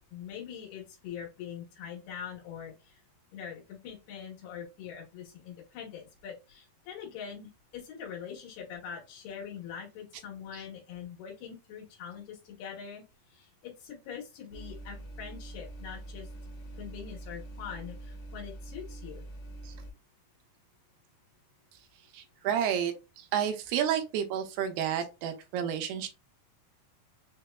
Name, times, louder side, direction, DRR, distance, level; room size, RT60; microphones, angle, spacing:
voice 1, 0.1-3.0 3.3-16.3 16.8-19.3, left 8 dB, 90° left, 3.0 m, -43 dB
sound 1, 14.5-19.9, right 1 dB, 70° left, 2.0 m, -44 dB
voice 2, 22.1-26.1, right 9 dB, 80° right, 2.4 m, -31 dB
6.3 x 2.2 x 2.2 m
omnidirectional pair, 4.4 m